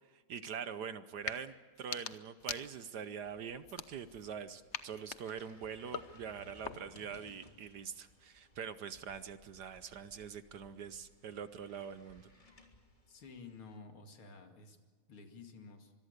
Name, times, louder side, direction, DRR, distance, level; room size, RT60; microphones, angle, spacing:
voice 1, 0.1-12.3, right 7 dB, 60° right, 12 dB, 1.2 m, -44 dB
sound 1, 1.1-1.4 1.8-3.1 3.6-4.3 4.7-7.1, left 7 dB, 55° left, 0.8 m, -45 dB
sound 2, 3.2-13.8, left 1 dB, 20° left, 3.1 m, -62 dB
voice 2, 13.1-14.8 15.1-15.9, left 4 dB, 85° left, 5 dB, 3.2 m, -52 dB
25.0 x 22.5 x 6.7 m, 1.5 s
omnidirectional pair, 2.3 m